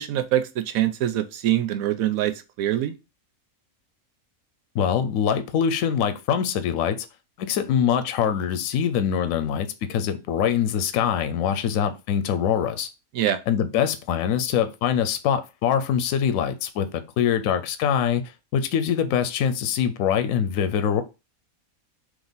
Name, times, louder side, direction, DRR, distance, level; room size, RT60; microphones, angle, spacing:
voice 1, 0.0-2.9 13.1-13.4, right 12 dB, 75° right, 1.0 m, -24 dB
voice 2, 4.7-7.0 7.4-12.9 13.5-18.2 18.5-21.0, left 8 dB, 75° left, 1.0 m, -23 dB
3.6 x 3.0 x 3.9 m
omnidirectional pair, 1.5 m